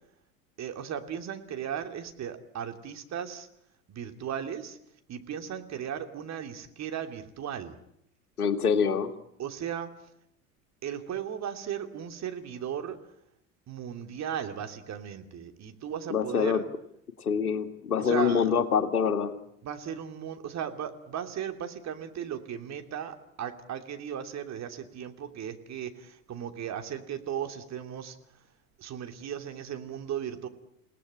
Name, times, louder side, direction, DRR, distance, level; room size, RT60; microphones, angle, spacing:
voice 1, 0.6-3.5 3.9-4.8 5.1-7.8 9.4-9.9 10.8-13.0 13.7-16.6 18.0-18.5 19.6-28.2 28.8-30.5, right 9 dB, 35° right, 7 dB, 2.9 m, -36 dB
voice 2, 8.4-9.1 16.1-16.6 17.2-19.3, left 6 dB, 80° left, 8 dB, 2.1 m, -25 dB
29.0 x 18.0 x 10.0 m, 0.76 s
figure-of-eight pair, 80°, 44 cm